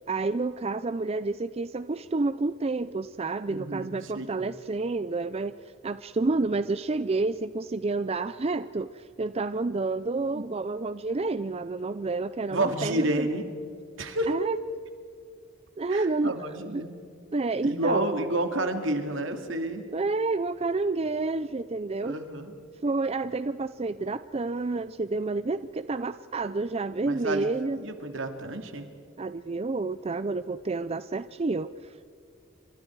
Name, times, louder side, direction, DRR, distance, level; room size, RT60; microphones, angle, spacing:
voice 1, 0.1-5.5 5.8-13.3 14.3-14.6 15.8-16.4 16.7-16.8 17.3-18.1 19.9-22.2 22.8-27.8 29.2-32.0, right 3 dB, 30° right, 13 dB, 0.4 m, -29 dB
voice 2, 3.5-4.3 10.3-10.4 12.5-13.5 14.0-14.3 15.9-17.0 17.6-19.8 22.0-22.5 27.0-27.5 27.8-28.9, right 1 dB, 65° right, 6 dB, 2.5 m, -30 dB
29.0 x 26.0 x 4.7 m, 2.4 s
head